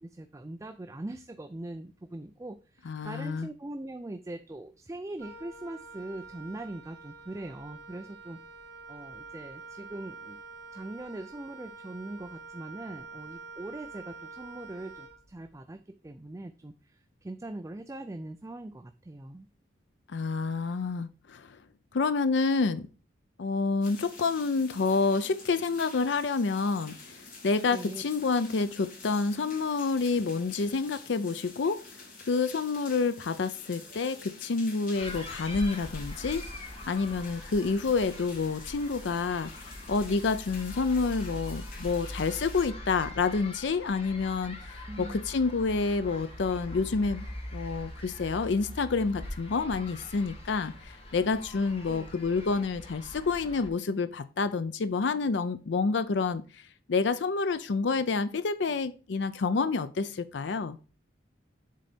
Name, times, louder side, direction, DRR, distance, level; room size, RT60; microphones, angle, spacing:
voice 1, 0.0-8.4 8.9-10.4 10.7-19.5 27.7-28.0 44.9-45.3 51.6-52.1, right 1 dB, 15° right, 0.4 m, -41 dB
voice 2, 2.9-3.5 20.1-21.6 21.9-22.9 23.4-31.8 32.3-39.5 39.9-47.3 47.5-60.8, left 4 dB, 70° left, 0.5 m, -28 dB
Wind instrument woodwind instrument, 5.2-15.6, right 4 dB, 60° right, 2.2 m, -47 dB
sound 1, 23.8-42.7, left 3 dB, 50° left, 2.5 m, -48 dB
sound 2, 34.9-53.7, left 1 dB, 30° left, 1.9 m, -42 dB
7.5 x 4.0 x 5.1 m
head